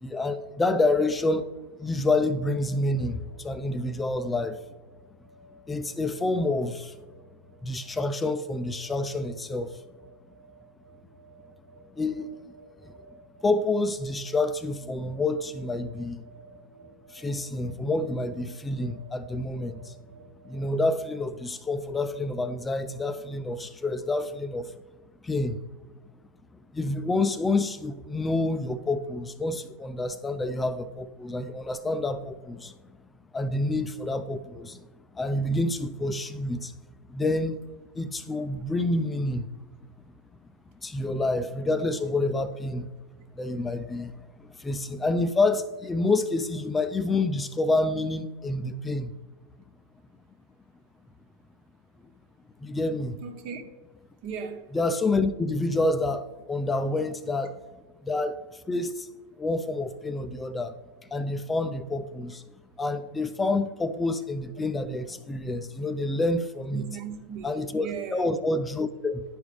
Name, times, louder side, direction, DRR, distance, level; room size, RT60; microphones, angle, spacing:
voice 1, 0.0-1.4 1.8-4.6 5.7-7.0 7.6-9.8 12.0-12.3 12.8-12.9 13.4-16.2 17.1-19.9 20.4-24.7 25.2-25.6 26.7-32.7 33.3-34.9 35.1-36.7 37.1-37.6 38.0-39.5 40.8-42.9 43.3-49.1 52.6-53.2 54.7-57.6 58.0-59.1 59.4-60.7 61.1-62.4 62.8-66.8 67.4-69.2, left 2 dB, 15° left, 0.4 m, -28 dB
sound 1, 2.5-21.0, right 3 dB, 75° right, 1.3 m, -54 dB
voice 2, 53.2-53.6 54.2-54.7 66.7-68.3, right 6 dB, 55° right, 1.2 m, -37 dB
10.0 x 4.8 x 3.4 m
hypercardioid pair, 115°, 0 cm